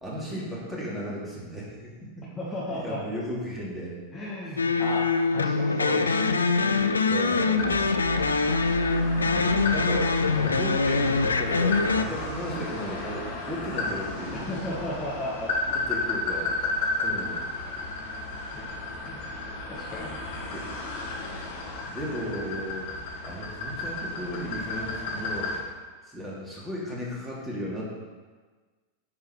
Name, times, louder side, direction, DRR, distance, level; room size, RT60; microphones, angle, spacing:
voice 1, 0.0-2.2 2.7-4.0 4.4-4.6 7.1-7.9 8.7-9.0 9.3-14.8 15.7-16.5 17.0-17.5 20.5-20.7 21.4-21.5 21.8-22.9 23.2-25.6 26.0-27.8, equal, 10° right, -5 dB, 2.9 m, -35 dB
voice 2, 2.4-3.0 4.1-5.1 5.3-6.5 7.6-7.9 14.3-15.5 18.5-18.6 19.0-19.3 19.7-20.2, left 1 dB, 10° left, -8 dB, 1.9 m, -35 dB
sound 1, 4.6-12.0, left 4 dB, 75° left, 0.4 m, -24 dB
sound 2, 7.6-25.6, left 2 dB, 55° left, 1.9 m, -33 dB
9.8 x 4.7 x 6.2 m, 1.4 s
figure-of-eight pair, 90°, 0 cm